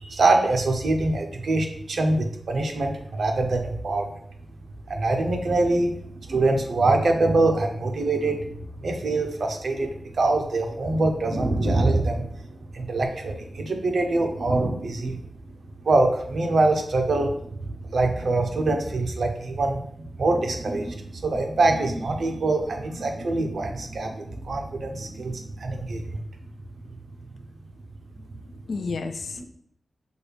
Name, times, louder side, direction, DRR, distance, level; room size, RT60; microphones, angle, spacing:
voice 1, 0.0-4.1 4.9-5.9 6.3-8.5 8.8-12.5 12.7-15.2 15.8-26.2 26.9-27.0 29.4-29.5, right 2 dB, 65° right, 4 dB, 0.7 m, -24 dB
voice 2, 28.2-29.4, left 4 dB, 70° left, 9 dB, 0.4 m, -33 dB
6.3 x 2.4 x 3.4 m, 0.66 s
wide cardioid pair, 125°, 0 cm